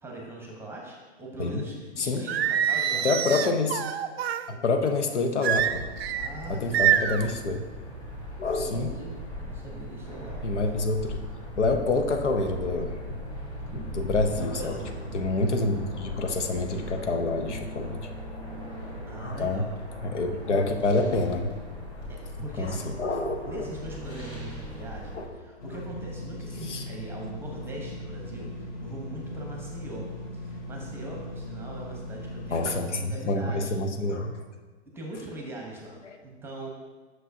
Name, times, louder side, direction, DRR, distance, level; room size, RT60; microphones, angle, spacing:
voice 1, 0.0-3.1 6.1-7.2 8.5-10.4 13.7-14.1 14.4-15.1 19.1-19.7 22.1-23.0 23.4-33.7 34.9-36.7, right 1 dB, 5° right, -1 dB, 0.9 m, -41 dB
Singing, 2.3-4.4 5.4-6.3 6.7-7.3, right 10 dB, 65° right, 0.5 m, -25 dB
voice 2, 3.0-3.8 4.5-5.9 6.5-7.6 8.4-9.0 10.4-11.2 11.6-12.9 13.7-14.8 15.1-18.0 19.2-19.6 20.0-21.5 22.6-23.7 25.1-25.3 26.6-26.8 32.5-34.3 36.0-36.2, left 3 dB, 85° left, 5 dB, 0.8 m, -27 dB
sound 1, 5.5-25.3, equal, 15° left, 1.7 m, -39 dB
sound 2, 25.6-32.8, left 1 dB, 40° left, 1.7 m, -39 dB
7.6 x 6.1 x 2.7 m, 1.3 s
hypercardioid pair, 125°, 34 cm